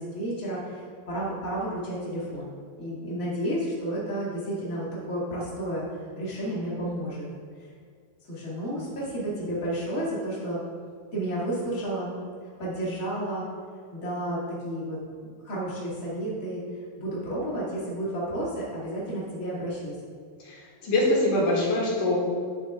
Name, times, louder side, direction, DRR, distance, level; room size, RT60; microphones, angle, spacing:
voice 1, 0.0-7.3 8.3-10.6 11.1-12.2 12.6-13.4 13.9-15.0 15.4-16.6 17.0-19.9, right 1 dB, 35° left, -7 dB, 1.5 m, -31 dB
voice 2, 20.8-22.2, left 1 dB, 60° left, -5 dB, 2.6 m, -23 dB
12.5 x 6.7 x 2.4 m, 2.1 s
omnidirectional pair, 5.0 m